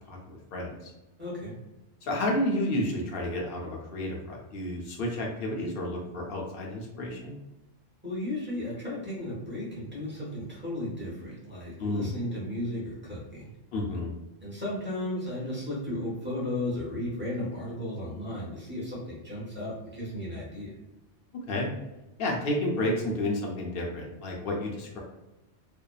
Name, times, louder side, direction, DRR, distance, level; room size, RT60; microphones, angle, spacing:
voice 1, 0.1-0.9 2.0-7.4 11.8-12.1 13.7-14.1 21.5-21.7 22.2-25.0, left 1 dB, 60° left, -1 dB, 0.6 m, -31 dB
voice 2, 1.2-1.5 8.0-13.5 14.4-20.7, left 1 dB, 10° right, -7 dB, 0.8 m, -34 dB
2.6 x 2.1 x 2.2 m, 0.98 s
omnidirectional pair, 1.3 m